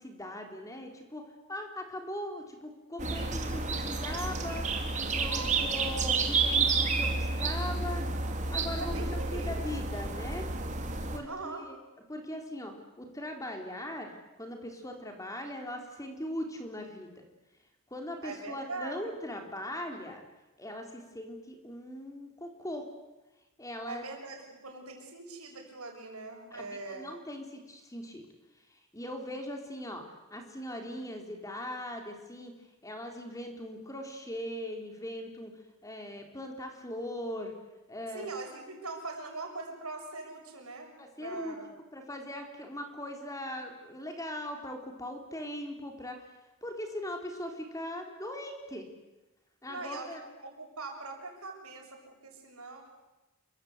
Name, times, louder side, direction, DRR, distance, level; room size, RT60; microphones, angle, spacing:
voice 1, 0.0-4.7 5.1-8.1 8.5-10.5 11.1-11.7 12.1-14.1 14.4-17.1 17.9-20.2 20.6-22.9 23.6-24.0 26.5-28.2 28.7-30.0 30.3-32.5 32.8-35.5 35.8-37.5 37.9-38.3 41.0-41.6 41.9-46.2 46.6-48.9 49.6-50.2, left 1 dB, 15° left, 3 dB, 4.0 m, -40 dB
sound 1, 3.0-11.2, right 3 dB, 35° right, 3.2 m, -30 dB
voice 2, 5.3-5.6 8.8-9.6 11.3-11.7 18.2-19.0 23.9-27.1 38.1-40.9 41.2-41.7 49.7-52.9, right 3 dB, 85° right, 3 dB, 7.0 m, -42 dB
28.5 x 24.5 x 8.2 m, 1.1 s
head